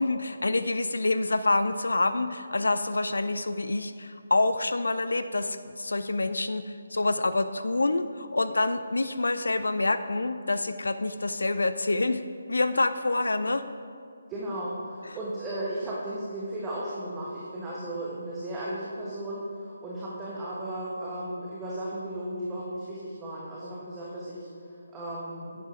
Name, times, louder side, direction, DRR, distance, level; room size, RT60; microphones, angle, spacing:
voice 1, 0.0-12.2 12.5-13.6, left 2 dB, 70° left, 11 dB, 0.4 m, -27 dB
voice 2, 14.3-25.6, right 1 dB, 15° right, -6 dB, 1.3 m, -35 dB
10.0 x 7.9 x 4.9 m, 2.3 s
figure-of-eight pair, 150°, 0 cm